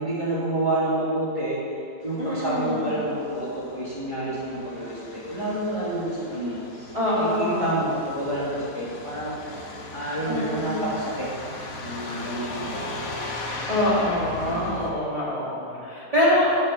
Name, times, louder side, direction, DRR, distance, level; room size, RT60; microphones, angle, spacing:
voice 1, 0.0-1.6 2.0-9.7 9.9-11.3 11.8-12.8 13.8-14.1 14.4-14.9, right 1 dB, 20° left, -10 dB, 3.1 m, -29 dB
Truck, 2.0-14.9, left 2 dB, 65° left, 1.7 m, -38 dB
voice 2, 2.2-2.9 6.9-7.7 10.3-10.9 13.7-16.5, left 1 dB, 20° right, -9 dB, 3.3 m, -24 dB
13.5 x 6.5 x 7.0 m, 2.5 s
omnidirectional pair, 1.6 m